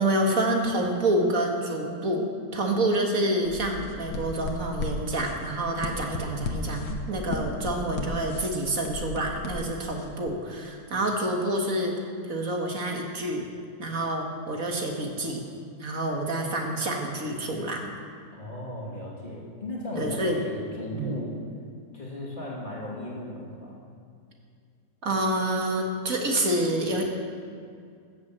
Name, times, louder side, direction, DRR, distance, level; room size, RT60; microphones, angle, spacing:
voice 1, 0.0-11.9 12.2-13.4 13.8-15.4 15.8-17.8 20.0-20.4 20.9-21.2 25.0-27.0, right 1 dB, 55° right, 1 dB, 2.0 m, -27 dB
sound 1, 3.4-10.1, left 3 dB, 85° left, 1.7 m, -36 dB
voice 2, 18.3-21.4 21.9-23.8, left 1 dB, 30° left, -5 dB, 2.6 m, -36 dB
13.5 x 7.6 x 8.0 m, 2.3 s
omnidirectional pair, 1.8 m